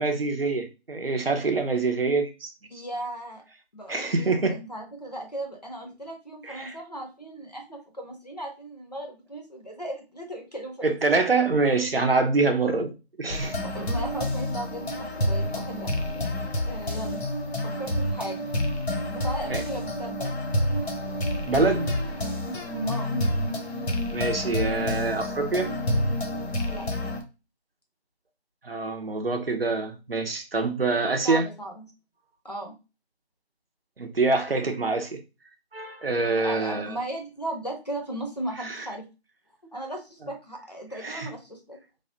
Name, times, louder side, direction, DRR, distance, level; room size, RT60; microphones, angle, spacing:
voice 1, 0.0-2.5 3.9-4.6 6.5-6.7 10.8-12.9 13.2-13.6 19.5-19.6 21.5-21.9 24.1-25.7 28.6-31.4 34.0-35.2 35.7-37.0 38.6-38.8 41.0-41.3, right 3 dB, 60° right, 0.7 m, -25 dB
voice 2, 2.7-3.4 3.7-11.2 13.6-15.9 16.6-17.3 17.6-18.5 19.1-20.4 22.9-23.1 26.7-26.9 31.2-31.8 32.4-32.7 36.3-39.1 39.7-41.8, right 1 dB, 40° left, 0.7 m, -36 dB
sound 1, 13.3-27.2, left 1 dB, 75° left, 1.0 m, -28 dB
3.3 x 2.2 x 2.7 m
figure-of-eight pair, 175°, 32 cm